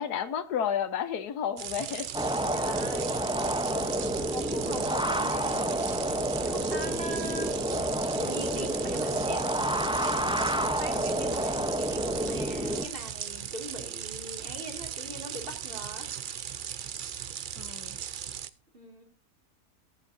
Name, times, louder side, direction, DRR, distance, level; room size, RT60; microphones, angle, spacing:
voice 1, 0.0-2.1 2.7-2.8 17.6-18.0, left 8 dB, 90° left, 12 dB, 1.5 m, -31 dB
sound 1, 1.6-18.5, right 9 dB, 75° right, 0.4 m, -38 dB
sound 2, 2.1-12.9, right 1 dB, 5° right, 0.4 m, -29 dB
voice 2, 2.5-3.3 3.8-7.5 8.2-9.5 9.8-16.1 18.7-19.0, right 1 dB, 35° right, 2 dB, 2.6 m, -41 dB
22.0 x 7.5 x 2.7 m, 0.33 s
omnidirectional pair, 1.6 m